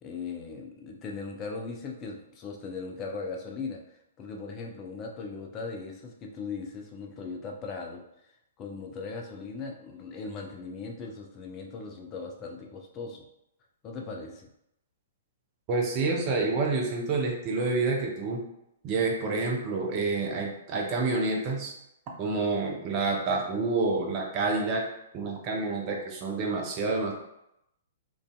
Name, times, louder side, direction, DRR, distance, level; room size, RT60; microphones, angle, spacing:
voice 1, 0.0-3.8 4.2-8.0 8.6-13.2 13.8-14.5, left 4 dB, 30° left, 1 dB, 0.4 m, -38 dB
voice 2, 15.7-18.4 18.8-21.7 22.2-24.9 25.1-27.1, right 3 dB, 35° right, 0 dB, 0.5 m, -28 dB
2.5 x 2.3 x 2.2 m, 0.81 s
figure-of-eight pair, 115°, 0 cm